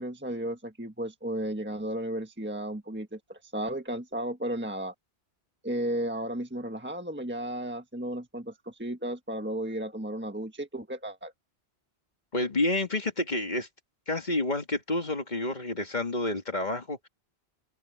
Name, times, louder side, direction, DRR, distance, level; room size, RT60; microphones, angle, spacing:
voice 1, 0.0-4.9 5.6-11.3, right 1 dB, 10° right, 1.5 m, -34 dB
voice 2, 12.3-13.7 14.1-17.1, left 2 dB, 40° left, 2.1 m, -29 dB
open air
omnidirectional pair, 1.2 m